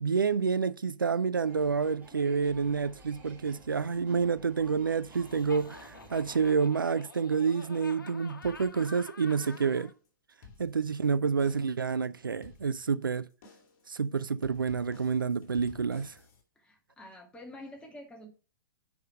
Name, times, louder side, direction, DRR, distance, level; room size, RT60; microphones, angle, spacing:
voice 1, 0.0-9.9 10.6-13.3 13.9-16.1, right 5 dB, 80° right, 0.5 m, -28 dB
sound 1, 1.4-6.5, right 2 dB, 15° right, 3.2 m, -53 dB
Laughter, 5.1-9.9, left 4 dB, 70° left, 1.1 m, -49 dB
sound 2, 8.4-9.1 9.4-9.9 10.3-11.1 11.4-11.9 12.4-13.1 13.4-13.9 14.4-16.4, left 4 dB, 45° left, 2.2 m, -54 dB
voice 2, 16.6-18.3, left 1 dB, 10° left, 2.1 m, -47 dB
7.8 x 5.5 x 4.5 m
figure-of-eight pair, 105°, 11 cm